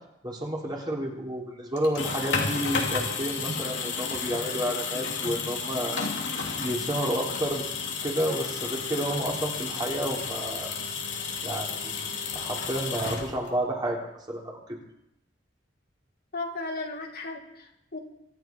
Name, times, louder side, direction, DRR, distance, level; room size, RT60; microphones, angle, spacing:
voice 1, 0.2-6.1 6.6-7.7 8.0-10.7 11.4-12.1 12.3-14.0 14.3-14.6, right 1 dB, 25° right, -2 dB, 3.5 m, -30 dB
sound 1, 1.8-13.7, left 5 dB, 90° left, 2.7 m, -32 dB
voice 2, 16.3-18.0, left 2 dB, 55° left, 2 dB, 2.1 m, -35 dB
24.5 x 11.0 x 4.6 m, 0.81 s
head